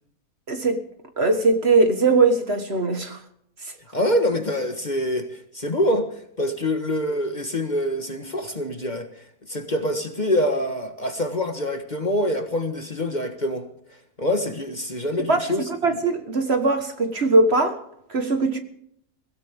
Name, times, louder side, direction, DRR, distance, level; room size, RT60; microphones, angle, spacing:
voice 1, 0.5-0.8 1.2-3.2 3.6-3.7 15.3-15.4 15.8-17.8 18.1-18.6, right 3 dB, 45° right, 1.7 m, -20 dB
voice 2, 3.9-13.7 14.2-16.0, left 1 dB, 30° left, 1.5 m, -25 dB
23.5 x 16.5 x 3.6 m
omnidirectional pair, 1.6 m